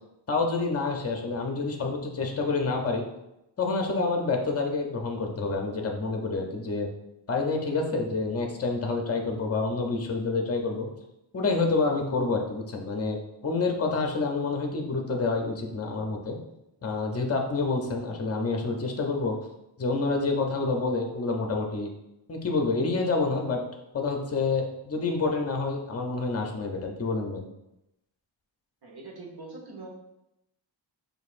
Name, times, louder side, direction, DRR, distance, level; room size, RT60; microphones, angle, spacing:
voice 1, 0.3-3.0 3.6-6.9 7.3-10.9 11.3-16.4 16.8-19.4 19.8-21.9 22.3-27.4, left 3 dB, 35° left, 2 dB, 0.7 m, -28 dB
voice 2, 28.8-29.9, right 3 dB, 55° right, -1 dB, 1.2 m, -43 dB
6.3 x 2.7 x 2.5 m, 0.88 s
wide cardioid pair, 75°, 45 cm